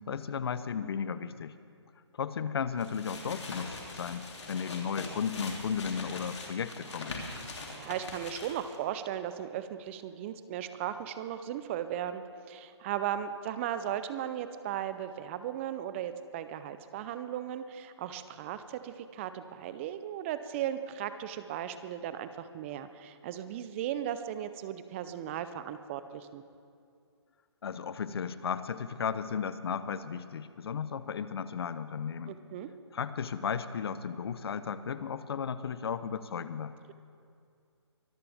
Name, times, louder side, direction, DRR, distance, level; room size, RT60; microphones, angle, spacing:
voice 1, 0.0-1.5 2.2-7.2 27.6-32.4 32.9-36.7, left 7 dB, 60° left, 14 dB, 0.7 m, -35 dB
sound 1, 2.8-8.8, left 3 dB, 75° left, 2.9 m, -42 dB
voice 2, 7.7-26.4 32.3-32.7, right 10 dB, 25° right, 11 dB, 0.6 m, -36 dB
23.5 x 14.0 x 3.5 m, 2.3 s
hypercardioid pair, 145°, 15 cm